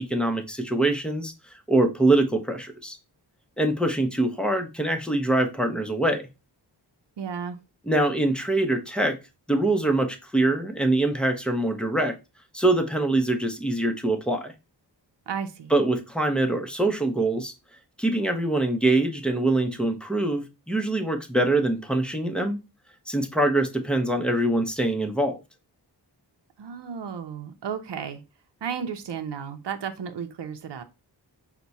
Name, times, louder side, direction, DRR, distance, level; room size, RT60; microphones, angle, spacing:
voice 1, 0.0-1.3 1.7-3.0 3.6-6.3 7.9-9.2 9.5-12.2 12.5-14.5 15.7-17.5 18.0-22.6 23.1-25.4, right 2 dB, ahead, 5 dB, 0.7 m, -24 dB
voice 2, 7.2-7.6 15.3-15.7 26.6-28.2 28.6-30.8, right 7 dB, 75° right, 7 dB, 0.7 m, -33 dB
5.8 x 2.2 x 4.0 m, 0.27 s
wide cardioid pair, 105°, 43 cm